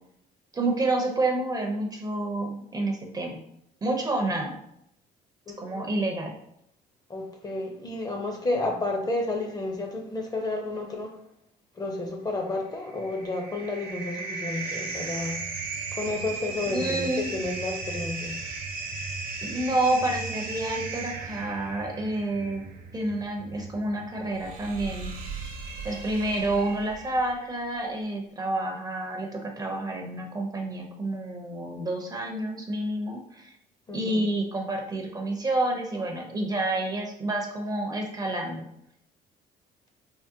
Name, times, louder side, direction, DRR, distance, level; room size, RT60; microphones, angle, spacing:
voice 1, 0.5-3.4 3.8-4.6 5.6-6.3 16.6-17.3 19.4-22.6 22.9-25.5 25.8-33.5 33.9-38.7, right 2 dB, 20° right, 1 dB, 0.5 m, -29 dB
voice 2, 5.5-5.8 7.1-11.2 11.8-15.4 15.9-18.4 33.9-34.2, left 2 dB, 25° left, 2 dB, 0.6 m, -31 dB
sound 1, 12.8-27.3, right 4 dB, 60° right, 0.8 m, -36 dB
3.6 x 2.0 x 2.7 m, 0.73 s
cardioid pair, 110°, 17 cm